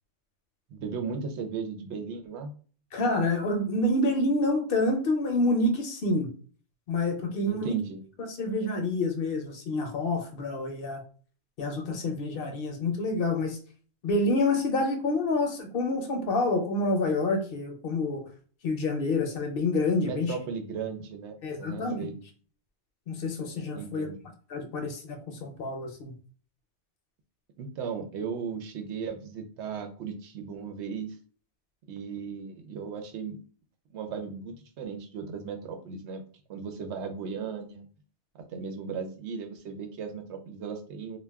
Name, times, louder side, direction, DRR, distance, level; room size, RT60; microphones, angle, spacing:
voice 1, 0.7-2.5 7.5-8.0 20.0-22.1 23.7-24.2 27.6-31.2 31.9-33.4 33.9-36.2 36.5-37.9 38.5-41.2, right 6 dB, 80° right, 6 dB, 0.9 m, -36 dB
voice 2, 2.9-6.3 6.9-7.8 8.3-11.0 11.6-13.6 14.0-18.3 18.6-20.4 21.4-22.1 23.1-24.1 24.5-26.1, left 2 dB, 65° left, 5 dB, 0.7 m, -28 dB
2.3 x 2.2 x 3.4 m, 0.42 s
omnidirectional pair, 1.1 m